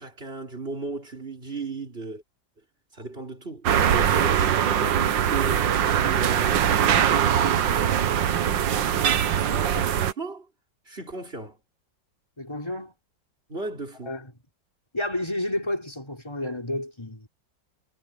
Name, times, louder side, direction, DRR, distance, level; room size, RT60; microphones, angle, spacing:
voice 1, 0.0-2.2 2.9-8.2 9.4-10.5 10.9-11.6 13.5-14.1, right 3 dB, 30° right, 4.3 m, -36 dB
sound 1, 3.7-10.1, right 9 dB, 80° right, 1.8 m, -22 dB
voice 2, 12.4-12.9 14.0-14.3 14.9-17.3, left 1 dB, 15° left, 4.5 m, -31 dB
omnidirectional pair, 2.0 m